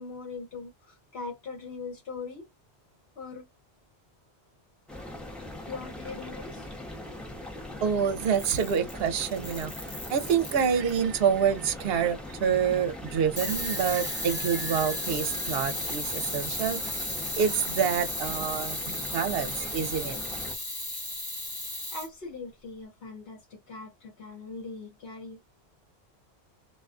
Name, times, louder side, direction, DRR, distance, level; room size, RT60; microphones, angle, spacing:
voice 1, 0.0-2.4 3.2-3.5 5.7-6.7 21.9-25.4, left 4 dB, 65° left, 1.1 m, -41 dB
sound 1, 4.9-20.5, left 1 dB, ahead, 0.5 m, -41 dB
voice 2, 7.8-17.1 17.4-20.2, right 7 dB, 70° right, 0.8 m, -27 dB
Camera, 8.2-9.0 9.4-11.0 13.4-22.1, left 1 dB, 20° left, 1.0 m, -34 dB
2.4 x 2.3 x 2.4 m
omnidirectional pair, 1.1 m